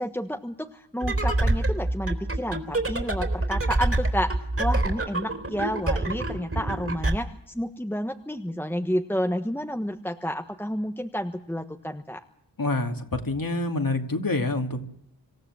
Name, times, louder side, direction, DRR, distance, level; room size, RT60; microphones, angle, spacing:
voice 1, 0.0-12.2, equal, 5° left, 5 dB, 1.3 m, -30 dB
sound 1, 1.0-7.2, right 2 dB, 30° right, 3.8 m, -26 dB
voice 2, 12.6-14.9, left 2 dB, 50° left, 4 dB, 2.7 m, -27 dB
26.5 x 14.5 x 7.6 m, 0.74 s
cardioid pair, 50°, 43 cm